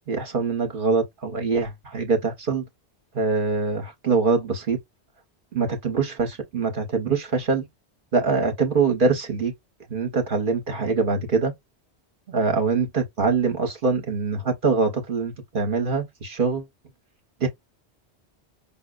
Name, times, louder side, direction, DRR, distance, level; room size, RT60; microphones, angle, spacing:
voice 1, 0.1-2.7 3.1-4.8 5.5-7.7 8.1-9.5 9.9-11.5 12.3-16.7 17.4-17.5, right 4 dB, 55° right, 0.9 m, -24 dB
5.4 x 2.0 x 2.3 m
omnidirectional pair, 1.1 m